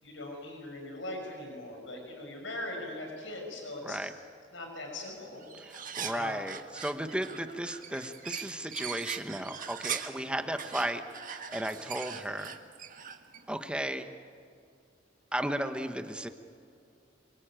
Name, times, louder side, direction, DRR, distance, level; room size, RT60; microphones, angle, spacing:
voice 1, 0.0-4.0 4.5-5.4 6.1-6.4 10.1-10.4, left 1 dB, 75° left, 2 dB, 6.3 m, -40 dB
voice 2, 3.8-4.1 5.6-12.5 13.5-14.1 15.3-16.3, right 1 dB, 5° right, 7 dB, 1.1 m, -35 dB
sound 1, 5.1-5.2 5.4-10.2 10.6-13.5, right 8 dB, 45° right, 1.6 m, -41 dB
27.0 x 23.5 x 9.0 m, 2.3 s
head